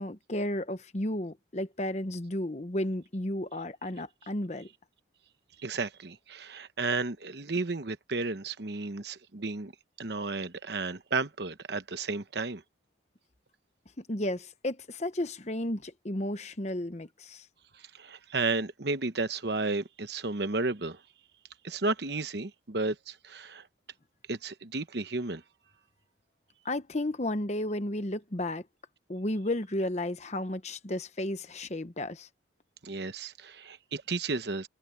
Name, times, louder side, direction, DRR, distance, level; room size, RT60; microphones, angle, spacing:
voice 1, 0.0-4.7 14.0-17.4 26.6-28.6 29.1-32.3, left 1 dB, 35° left, 1.0 m, -33 dB
voice 2, 5.6-9.7 10.0-12.6 17.9-21.0 21.6-23.7 24.3-25.4 32.8-34.7, right 3 dB, 60° right, 1.0 m, -33 dB
head